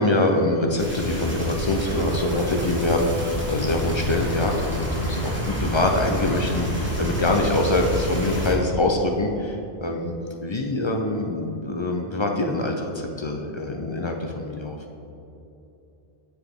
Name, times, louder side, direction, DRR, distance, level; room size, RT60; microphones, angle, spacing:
voice 1, 0.0-10.1 10.4-12.9 13.2-14.8, left 2 dB, 50° left, 2 dB, 0.3 m, -24 dB
sound 1, 0.8-8.5, equal, 10° right, 1.2 m, -28 dB
7.0 x 6.7 x 3.5 m, 2.9 s
omnidirectional pair, 1.1 m